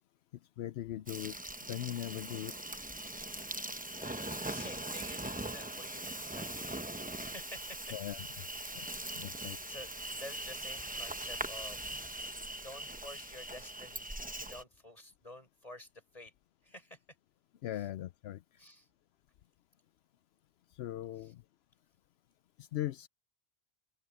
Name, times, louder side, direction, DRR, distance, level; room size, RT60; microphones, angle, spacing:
voice 1, 0.6-1.4 1.7-2.5 7.9-8.3 8.7-8.9 9.1-9.6 17.6-18.4 20.7-21.4 22.6-23.1, left 13 dB, 80° left, 0.8 m, -39 dB
Insect, 1.1-14.6, right 1 dB, 10° right, 0.8 m, -41 dB
voice 2, 3.9-6.9 7.2-7.8 8.9-11.8 12.5-16.3 16.6-17.0 17.8-17.9 18.6-18.9 21.2-21.3, left 1 dB, 35° left, 7.1 m, -51 dB
open air
omnidirectional pair, 1.0 m